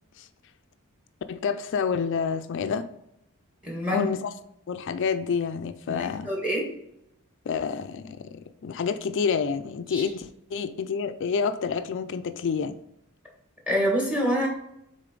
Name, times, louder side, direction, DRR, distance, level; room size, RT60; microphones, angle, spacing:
voice 1, 1.3-2.9 3.9-4.3 4.7-6.3 7.5-12.8, left 6 dB, 55° left, 0.4 m, -28 dB
voice 2, 3.6-4.1 5.9-6.7 9.9-10.1 13.7-14.5, equal, 5° right, 1.6 m, -26 dB
6.6 x 3.9 x 3.8 m
head